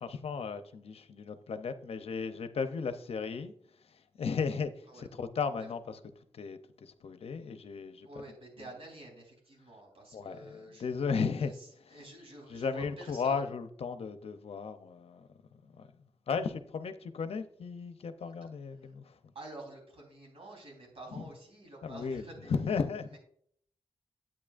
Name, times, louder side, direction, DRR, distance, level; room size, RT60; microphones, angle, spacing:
voice 1, 0.0-6.0 6.3-8.1 10.1-11.5 12.5-19.3 21.1-21.2 21.8-23.2, left 5 dB, 75° left, 0.6 m, -35 dB
voice 2, 8.0-10.8 11.4-13.5 18.3-18.5 18.8-18.9 19.3-22.6 23.1-23.2, right 2 dB, 70° right, 3.7 m, -49 dB
8.8 x 8.6 x 2.5 m
cardioid pair, 75°, 10 cm